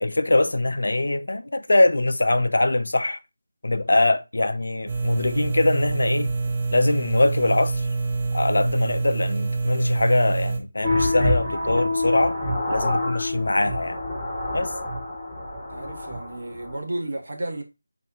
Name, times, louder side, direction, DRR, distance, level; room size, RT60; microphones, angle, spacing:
voice 1, 0.0-3.2 3.6-6.3 6.7-7.9 8.3-12.4 12.7-14.0 14.5-14.7, left 2 dB, 70° left, 0.5 m, -22 dB
sound 1, 4.9-10.6, right 3 dB, 25° right, 0.8 m, -26 dB
sound 2, 10.8-16.8, left 1 dB, 10° left, 1.0 m, -26 dB
voice 2, 15.7-17.6, right 1 dB, 50° right, 1.2 m, -32 dB
4.1 x 2.7 x 4.7 m
figure-of-eight pair, 170°, 0 cm